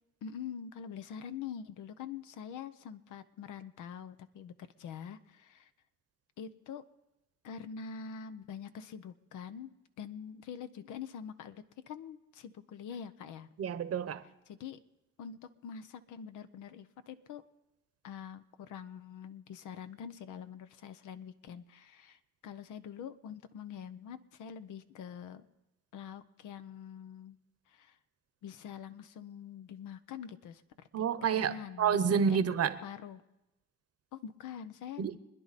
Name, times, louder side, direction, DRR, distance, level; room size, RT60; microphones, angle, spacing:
voice 1, 0.2-4.5 4.8-5.7 6.4-6.9 7.4-9.7 10.0-13.5 14.5-14.8 15.2-17.4 18.0-25.5 25.9-27.4 27.7-28.0 28.4-30.6 31.0-32.4 32.8-33.2 34.1-35.0, left 7 dB, 80° left, 11 dB, 0.9 m, -45 dB
voice 2, 13.6-14.2 30.9-32.8 35.0-35.2, right 7 dB, 55° right, 13 dB, 0.9 m, -29 dB
26.0 x 10.0 x 4.2 m, 0.95 s
cardioid pair, 90°, 30 cm